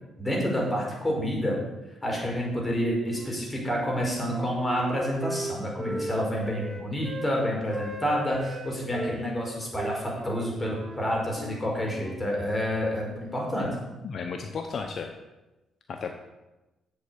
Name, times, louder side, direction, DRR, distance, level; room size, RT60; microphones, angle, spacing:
voice 1, 0.2-1.6 2.0-13.7, equal, 15° left, -2 dB, 5.1 m, -28 dB
Wind instrument woodwind instrument, 3.1-3.9 4.2-7.3 7.7-9.2 9.7-12.2, right 1 dB, 15° right, 2.4 m, -38 dB
voice 2, 14.0-15.2 15.9-16.1, left 5 dB, 55° left, 4 dB, 1.0 m, -33 dB
8.2 x 8.0 x 8.3 m, 1.0 s
cardioid pair, 90°, 0 cm